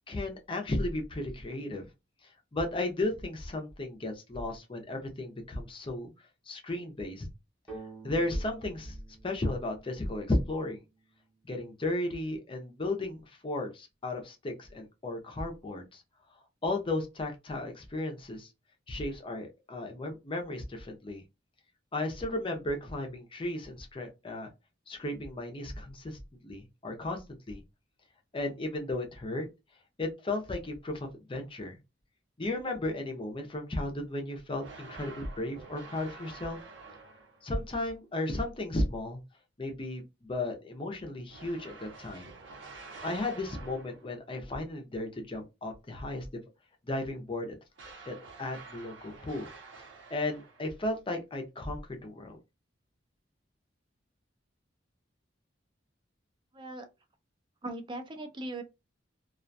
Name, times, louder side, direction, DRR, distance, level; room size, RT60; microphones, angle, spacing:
voice 1, 0.1-1.9 2.2-6.1 6.5-7.3 8.0-9.0 9.2-10.8 11.4-16.0 16.6-18.5 18.9-21.2 21.9-24.5 24.9-27.6 28.3-29.5 30.0-31.8 32.4-36.6 37.4-39.2 39.6-42.3 43.0-46.4 46.8-47.6 48.0-49.5 50.1-52.4, left 2 dB, 30° left, 0.5 m, -34 dB
sound 1, 7.7-11.3, right 3 dB, 10° left, 1.0 m, -50 dB
sound 2, 34.6-37.6 41.3-44.2 47.7-50.8, right 4 dB, 85° right, 0.9 m, -49 dB
voice 2, 56.5-56.9 57.6-58.6, right 2 dB, 25° right, 0.5 m, -39 dB
2.4 x 2.2 x 2.5 m
head